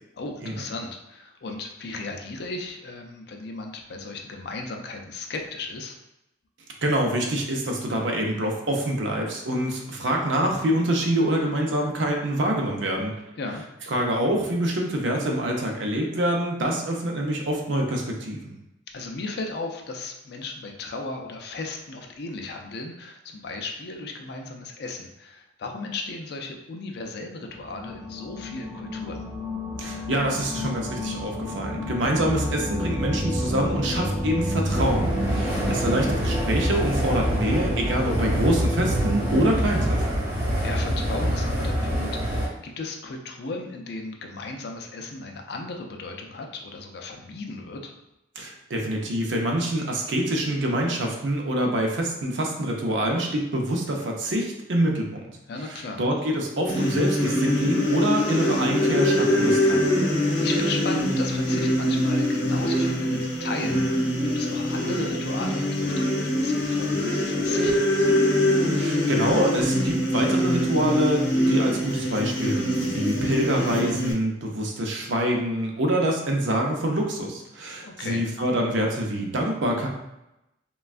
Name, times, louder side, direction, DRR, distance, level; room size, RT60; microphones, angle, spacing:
voice 1, 0.2-6.0 13.4-13.6 18.9-29.2 35.4-35.8 40.6-47.9 55.5-56.0 60.1-68.2 77.8-78.2, left 3 dB, 55° left, 3 dB, 0.4 m, -36 dB
voice 2, 6.8-13.1 13.9-18.6 29.8-40.2 48.4-55.3 55.7-59.9 68.7-79.9, right 1 dB, 70° right, 0 dB, 0.6 m, -26 dB
sound 1, 27.5-39.3, equal, 5° right, 0.7 m, -30 dB
sound 2, 34.7-42.5, equal, 50° right, 0.9 m, -26 dB
sound 3, 56.7-74.1, left 1 dB, 80° left, 0.8 m, -24 dB
3.2 x 2.2 x 2.4 m, 0.89 s
head